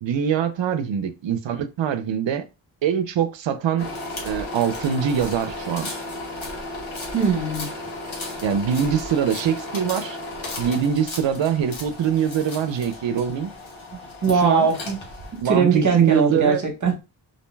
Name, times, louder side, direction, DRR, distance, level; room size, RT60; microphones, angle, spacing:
voice 1, 0.0-2.4 2.8-3.9 4.2-5.9 8.4-10.2 10.6-13.5 14.3-14.7 15.4-16.6, right 8 dB, 70° right, 0.5 m, -23 dB
sound 1, 3.8-15.4, left 2 dB, 80° left, 1.0 m, -34 dB
voice 2, 7.1-7.7 14.2-15.0 15.4-17.0, right 5 dB, 40° right, 0.9 m, -20 dB
2.6 x 2.1 x 3.1 m
wide cardioid pair, 80°, 46 cm